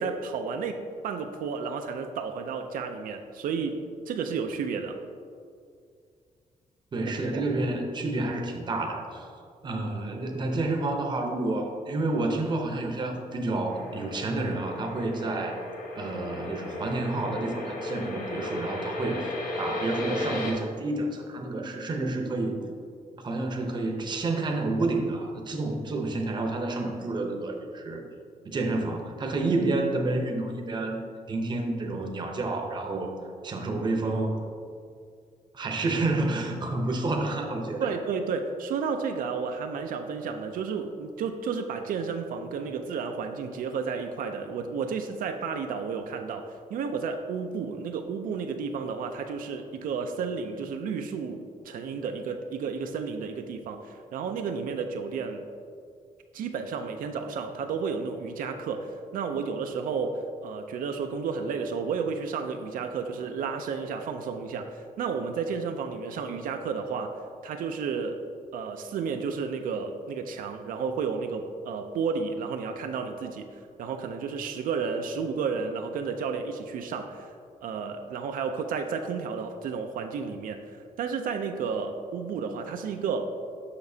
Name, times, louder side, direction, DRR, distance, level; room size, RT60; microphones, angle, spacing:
voice 1, 0.0-3.8 4.1-5.0 7.3-7.4 37.8-55.5 56.3-67.1 67.4-68.2 68.5-73.5 73.8-77.3 77.6-80.6 81.0-83.3, right 5 dB, 85° right, 5 dB, 0.4 m, -32 dB
voice 2, 6.9-9.3 9.6-15.6 15.9-22.6 23.2-28.0 28.4-33.1 33.4-34.4 35.5-38.0, right 2 dB, 35° right, 2 dB, 0.7 m, -29 dB
sound 1, 13.7-20.5, left 1 dB, 80° left, 1.1 m, -35 dB
6.8 x 5.8 x 2.7 m, 2.3 s
wide cardioid pair, 150°, 14 cm